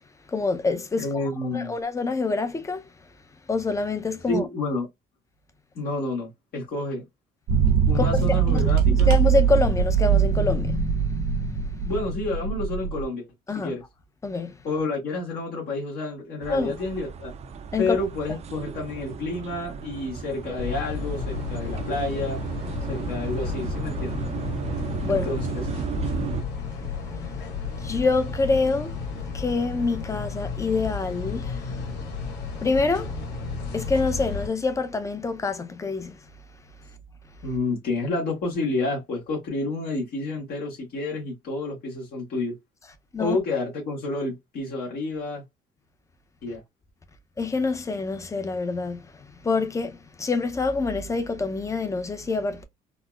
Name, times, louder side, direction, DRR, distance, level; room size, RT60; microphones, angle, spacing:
voice 1, 0.3-1.2 1.5-2.8 3.5-4.5 7.9-10.8 13.5-13.7 14.2-14.6 16.5-16.7 17.7-18.0 25.0-25.3 27.0-27.4 27.8-29.0 29.3-31.8 32.6-33.1 33.7-36.2 43.1-43.4 47.4-52.6, left 3 dB, 20° left, 0.6 m, -26 dB
voice 2, 1.0-1.7 4.3-4.9 5.7-7.0 7.9-9.1 11.8-13.3 13.5-13.8 14.6-17.4 17.8-22.4 22.9-24.2 25.1-25.6 37.4-42.6 43.2-45.4 46.4-46.6, left 2 dB, 65° left, 1.5 m, -29 dB
sound 1, 7.5-13.0, right 7 dB, 80° right, 1.0 m, -22 dB
sound 2, 16.4-26.4, right 5 dB, 40° right, 0.5 m, -34 dB
sound 3, 20.6-34.5, left 5 dB, 85° left, 1.4 m, -33 dB
4.0 x 2.0 x 2.3 m
cardioid pair, 110°, 17 cm